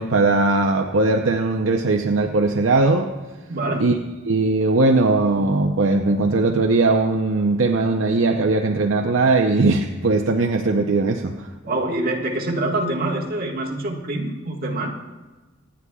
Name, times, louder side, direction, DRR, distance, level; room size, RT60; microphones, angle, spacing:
voice 1, 0.0-3.1 3.8-4.0 4.3-11.5, right 3 dB, 70° right, 3 dB, 0.7 m, -19 dB
voice 2, 3.5-3.9 11.6-15.0, right 2 dB, 50° right, -1 dB, 1.6 m, -25 dB
26.0 x 9.6 x 2.3 m, 1.2 s
head